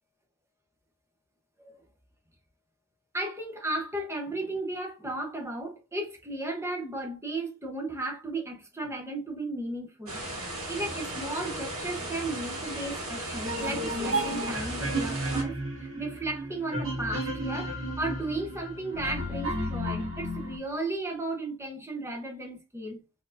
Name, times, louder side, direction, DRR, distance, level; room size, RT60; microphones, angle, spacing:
voice 1, 3.1-10.2 10.7-23.0, right 2 dB, 15° right, 0.9 m, -35 dB
sound 1, 10.1-15.4, right 1 dB, 80° right, 2.2 m, -36 dB
sound 2, 13.4-20.6, right 1 dB, 65° right, 1.7 m, -33 dB
4.5 x 3.8 x 2.6 m
head